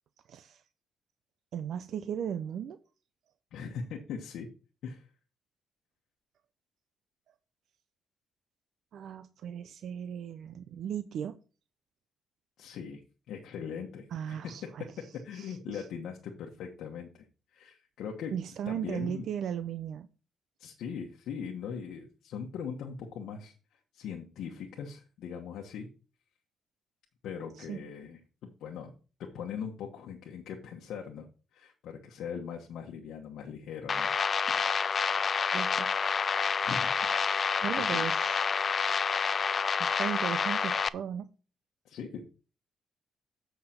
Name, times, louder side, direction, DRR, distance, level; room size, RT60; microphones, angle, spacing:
voice 1, 0.3-0.6 1.5-2.8 8.9-11.4 14.1-14.8 15.3-15.9 18.3-20.1 27.6-27.8 34.5-34.7 35.5-35.9 36.6-36.8 37.6-38.4 39.7-41.3, right 9 dB, 70° right, 0.5 m, -37 dB
voice 2, 3.5-4.5 4.8-5.1 12.6-13.0 13.3-14.4 15.2-17.2 17.5-18.3 18.7-19.2 20.6-23.5 23.9-25.9 27.2-28.9 29.3-31.3 31.5-34.1 36.7-36.9 37.4-38.1 41.8-42.2, left 7 dB, 80° left, 1.1 m, -40 dB
sound 1, 33.9-40.9, left 5 dB, 40° left, 0.3 m, -28 dB
7.8 x 5.7 x 4.3 m
cardioid pair, 90°, 0 cm